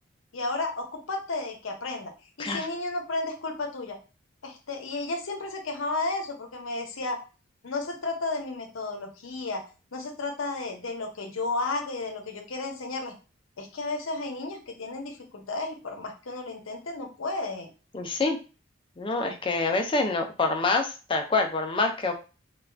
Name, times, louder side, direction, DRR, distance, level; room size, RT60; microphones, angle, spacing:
voice 1, 0.3-2.1 2.4-4.0 4.4-7.2 7.6-9.6 9.9-13.2 13.6-17.7, left 3 dB, 80° left, 3 dB, 0.7 m, -33 dB
voice 2, 17.9-18.4 19.0-22.1, left 3 dB, 25° left, 4 dB, 0.4 m, -26 dB
2.4 x 2.2 x 3.3 m, 0.33 s
head